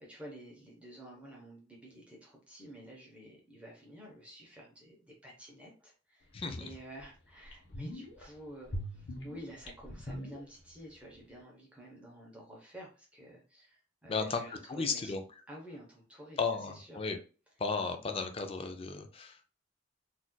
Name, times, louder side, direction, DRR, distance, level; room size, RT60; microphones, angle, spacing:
voice 1, 0.0-6.3 6.6-15.2 15.5-16.4 16.7-17.1, right 1 dB, 5° right, -2 dB, 0.8 m, -50 dB
sound 1, 6.4-6.5 7.0-7.1 7.4-8.2 8.7-10.9 11.2-11.3, equal, 70° left, 1.0 m, -42 dB
voice 2, 14.1-14.4 14.7-15.2 16.4-17.2 17.6-19.5, left 4 dB, 30° left, 6 dB, 0.4 m, -34 dB
4.1 x 2.5 x 2.2 m, 0.36 s
head